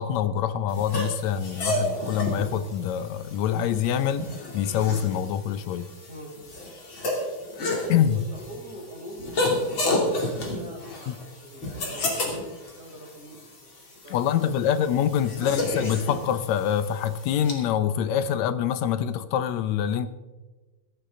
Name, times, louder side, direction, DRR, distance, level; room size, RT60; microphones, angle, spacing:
voice 1, 0.0-4.3 4.5-5.9 7.9-8.2 11.1-11.2 14.1-20.1, left 9 dB, 75° left, 12 dB, 1.8 m, -25 dB
sound 1, 0.7-17.5, left 1 dB, 40° left, 3.3 m, -31 dB
voice 2, 8.1-9.5 10.0-14.9 15.3-15.8, equal, 20° left, -2 dB, 4.0 m, -42 dB
17.0 x 14.5 x 3.7 m, 1.2 s
omnidirectional pair, 3.7 m